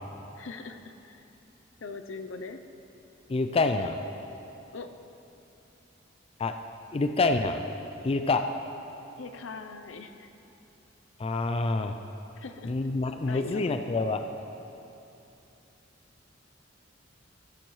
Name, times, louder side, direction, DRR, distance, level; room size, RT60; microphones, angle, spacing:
voice 1, 0.3-1.2 1.8-2.6 4.7-4.9 9.2-10.3 12.4-12.8 13.3-13.7, left 4 dB, 80° left, 7 dB, 0.6 m, -41 dB
voice 2, 3.3-3.9 6.4-6.5 6.9-7.6 8.0-8.4 11.2-11.9 12.7-14.2, left 3 dB, 30° left, 7 dB, 0.4 m, -26 dB
14.0 x 11.5 x 3.2 m, 2.8 s
head